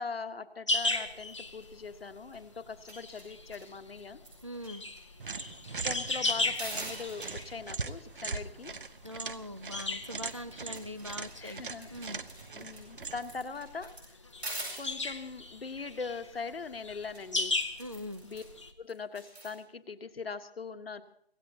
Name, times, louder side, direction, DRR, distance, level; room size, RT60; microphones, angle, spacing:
voice 1, 0.0-4.2 5.5-5.6 5.8-8.7 11.4-11.9 12.5-14.1 14.8-17.5 18.2-18.4 18.8-21.0, left 4 dB, 65° left, 9 dB, 1.4 m, -41 dB
sound 1, 0.7-18.7, left 2 dB, 30° left, 0.9 m, -37 dB
sound 2, 0.8-1.0 1.3-1.7 2.2-2.4 2.7-4.7 5.0-5.1 5.3-6.2 6.5-7.5 9.9-10.0 10.3-14.9 17.0-18.5 18.9-19.6, right 2 dB, 85° right, 7.7 m, -45 dB
voice 2, 4.4-4.8 9.0-11.6 11.9-12.2 17.8-18.2, left 1 dB, 30° right, 9 dB, 0.5 m, -42 dB
sound 3, 5.2-13.4, right 4 dB, 55° right, 0.9 m, -41 dB
25.0 x 17.5 x 2.9 m, 0.69 s
hypercardioid pair, 175°, 32 cm